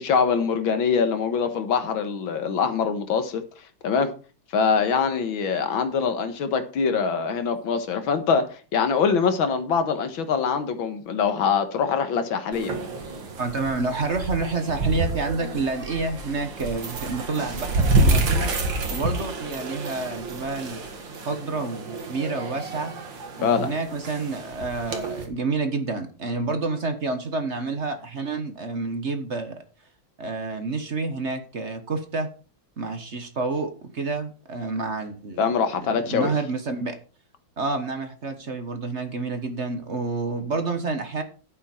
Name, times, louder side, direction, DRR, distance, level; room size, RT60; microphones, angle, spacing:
voice 1, 0.0-3.4 3.8-4.1 4.5-12.8 23.4-23.7 35.4-36.3, left 6 dB, 90° left, 2.1 m, -23 dB
sound 1, 12.5-25.3, right 2 dB, 75° right, 2.6 m, -28 dB
voice 2, 13.4-18.5 18.9-20.9 21.2-22.9 23.4-29.6 30.2-32.3 32.8-37.0 37.6-41.2, right 3 dB, 40° right, 1.3 m, -29 dB
11.0 x 8.6 x 4.4 m
omnidirectional pair, 2.1 m